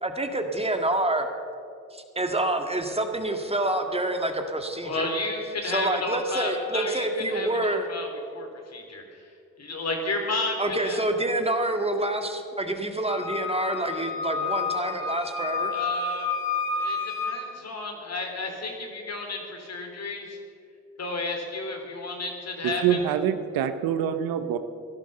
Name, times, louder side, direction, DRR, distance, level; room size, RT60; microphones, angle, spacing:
voice 1, 0.0-1.3 1.9-5.1 5.6-7.9 10.6-15.7, right 1 dB, 15° right, 5 dB, 2.0 m, -27 dB
voice 2, 4.8-9.3 9.6-11.0 15.7-16.3 16.8-20.4 21.0-23.0, left 2 dB, 45° left, 3 dB, 3.8 m, -32 dB
Wind instrument woodwind instrument, 13.1-17.4, left 4 dB, 75° left, 3.6 m, -30 dB
voice 3, 22.8-24.6, right 9 dB, 80° right, 10 dB, 1.0 m, -25 dB
16.0 x 11.5 x 6.8 m, 2.5 s
supercardioid pair, 65°, 35 cm